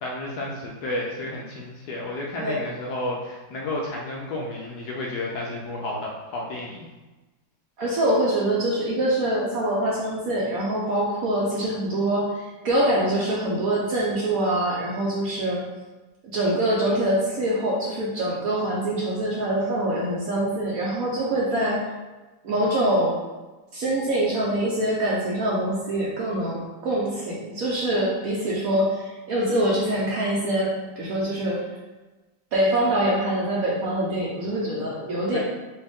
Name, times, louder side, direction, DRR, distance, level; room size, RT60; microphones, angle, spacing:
voice 1, 0.0-6.9 35.3-35.4, left 2 dB, 70° left, -2 dB, 1.0 m, -31 dB
voice 2, 7.8-15.6 16.3-21.8 22.4-23.1 23.7-31.6 32.5-35.4, right 1 dB, 65° right, -4 dB, 0.9 m, -24 dB
4.3 x 2.6 x 3.5 m, 1.2 s
omnidirectional pair, 2.1 m